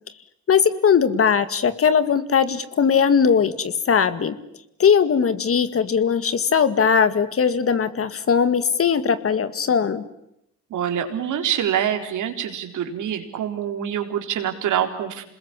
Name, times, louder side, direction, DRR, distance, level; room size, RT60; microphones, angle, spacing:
voice 1, 0.5-4.4 4.8-10.0, left 6 dB, 50° left, 13 dB, 2.1 m, -19 dB
voice 2, 10.7-15.2, right 9 dB, 80° right, 5 dB, 4.0 m, -25 dB
28.0 x 21.0 x 9.9 m, 0.80 s
cardioid pair, 90°, 30 cm